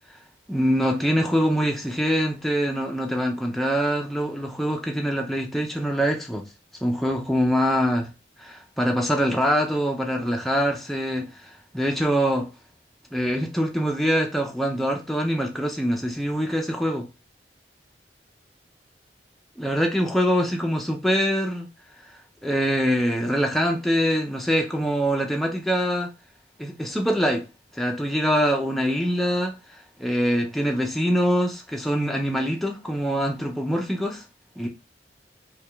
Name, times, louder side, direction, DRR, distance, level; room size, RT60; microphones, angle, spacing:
voice 1, 0.5-6.4 6.8-8.1 8.4-11.4 11.7-12.5 13.1-17.1 19.6-21.7 22.4-26.1 26.6-27.5 27.7-29.6 30.0-34.2 34.6-34.7, equal, ahead, 0.5 m, -24 dB
4.7 x 2.3 x 3.3 m
head